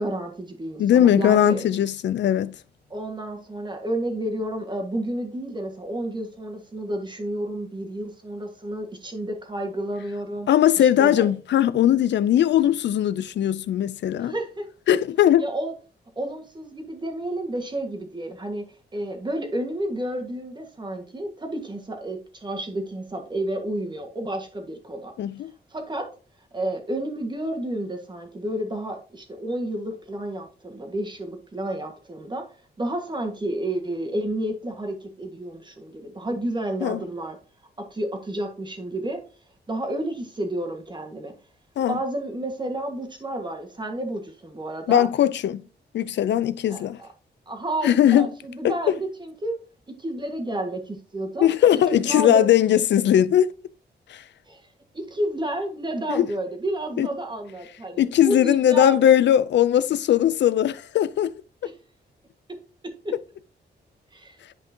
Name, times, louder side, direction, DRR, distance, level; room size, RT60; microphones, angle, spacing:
voice 1, 0.0-1.6 2.9-10.5 10.8-11.3 14.2-14.7 15.4-15.7 16.1-18.6 18.9-25.1 25.7-26.1 26.5-32.5 32.8-37.4 37.8-39.2 39.7-41.3 41.9-45.1 46.7-47.1 47.5-49.6 49.9-51.5 51.9-52.5 54.5-54.7 54.9-59.0 61.6-61.7 62.5-63.2 64.1-64.4, right 1 dB, 25° right, 1.6 m, -31 dB
voice 2, 0.8-2.6 10.5-14.3 14.9-15.5 25.2-25.5 36.8-37.0 41.8-42.0 44.9-45.6 45.9-47.0 47.8-48.3 48.6-48.9 51.4-53.5 54.1-54.2 56.1-56.3 57.0-57.1 58.0-61.3, left 11 dB, 80° left, 0.5 m, -19 dB
10.5 x 5.3 x 2.8 m
wide cardioid pair, 115°, 18 cm